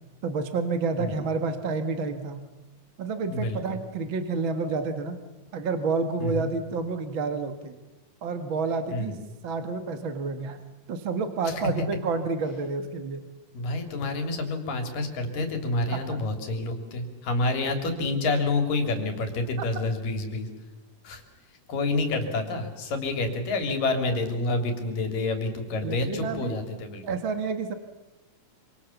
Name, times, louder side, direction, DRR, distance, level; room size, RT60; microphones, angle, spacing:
voice 1, 0.2-2.4 3.0-5.2 5.5-7.8 8.2-9.2 9.4-10.6 10.9-13.2 15.9-16.2 25.8-26.6 27.0-27.7, right 4 dB, 45° right, 8 dB, 2.0 m, -29 dB
voice 2, 6.2-6.5 8.9-9.2 13.5-20.5 21.0-21.2 21.7-27.0, left 2 dB, 80° left, 6 dB, 4.8 m, -28 dB
27.0 x 26.5 x 7.2 m, 1.1 s
omnidirectional pair, 3.8 m